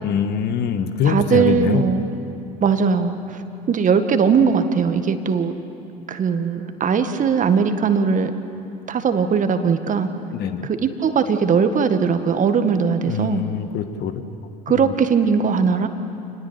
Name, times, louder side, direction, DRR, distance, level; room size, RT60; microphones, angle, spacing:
voice 1, 0.0-1.8 10.3-10.7 13.0-14.1 14.7-14.9, left 7 dB, 55° left, 9 dB, 1.6 m, -23 dB
voice 2, 1.1-2.0 2.6-3.4 3.7-5.5 6.1-8.3 8.9-10.1 10.6-13.4 14.7-15.9, right 6 dB, 40° right, 8 dB, 1.8 m, -19 dB
28.0 x 20.0 x 8.4 m, 2.8 s
hypercardioid pair, 65°, 20 cm